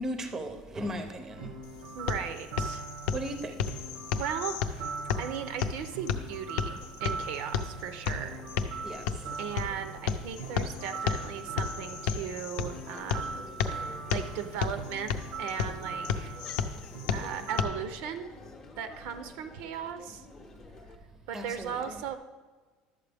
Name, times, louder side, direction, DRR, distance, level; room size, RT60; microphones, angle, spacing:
voice 1, 0.0-1.5 3.1-3.6 8.8-9.1 21.3-22.0, equal, 20° right, 0.6 m, -36 dB
sound 1, 1.3-17.8, right 4 dB, 90° right, 1.2 m, -41 dB
sound 2, 1.6-17.6, left 7 dB, 65° left, 0.6 m, -34 dB
voice 2, 1.9-2.8 4.1-4.9 5.2-8.9 9.4-13.5 13.8-15.1 15.4-16.4 17.1-18.3 18.8-20.3 21.3-22.2, right 8 dB, 65° right, 0.7 m, -37 dB
Crowd, 6.8-20.9, left 3 dB, 20° left, 0.8 m, -51 dB
11.5 x 7.5 x 3.4 m
cardioid pair, 165°, 2 cm